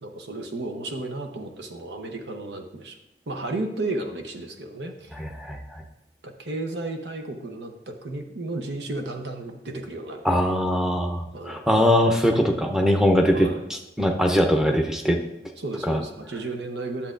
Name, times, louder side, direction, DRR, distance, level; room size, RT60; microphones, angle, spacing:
voice 1, 0.0-3.0 3.3-5.1 6.2-10.2 11.3-11.6 13.3-13.6 15.6-17.1, right 2 dB, 80° right, 4 dB, 0.9 m, -33 dB
voice 2, 5.1-5.8 10.2-15.2 15.8-16.0, equal, 5° right, 2 dB, 0.7 m, -22 dB
10.5 x 7.1 x 2.6 m, 0.94 s
head